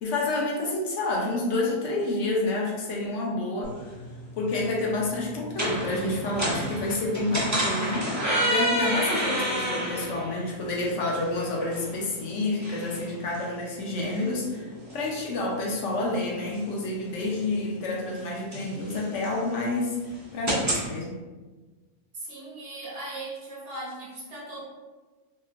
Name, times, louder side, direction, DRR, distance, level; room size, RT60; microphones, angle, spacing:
voice 1, 0.0-4.0 4.4-20.0 20.3-21.2, left 2 dB, 75° left, -2 dB, 0.9 m, -29 dB
sound 1, 3.6-20.9, right 1 dB, 25° right, 0.4 m, -32 dB
voice 2, 22.1-24.6, right 2 dB, 50° right, -6 dB, 1.0 m, -38 dB
2.9 x 2.3 x 2.4 m, 1.3 s
omnidirectional pair, 1.3 m